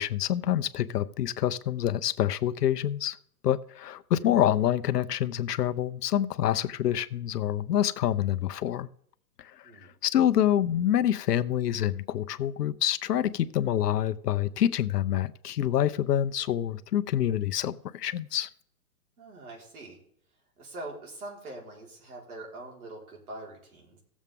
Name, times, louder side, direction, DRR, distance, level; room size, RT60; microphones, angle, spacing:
voice 1, 0.0-3.2 3.4-8.9 9.4-18.5, left 11 dB, 80° left, 0.8 m, -27 dB
voice 2, 19.2-20.0 20.6-24.0, right 2 dB, 65° right, 4.4 m, -43 dB
17.0 x 7.3 x 3.6 m
hypercardioid pair, 160°, 47 cm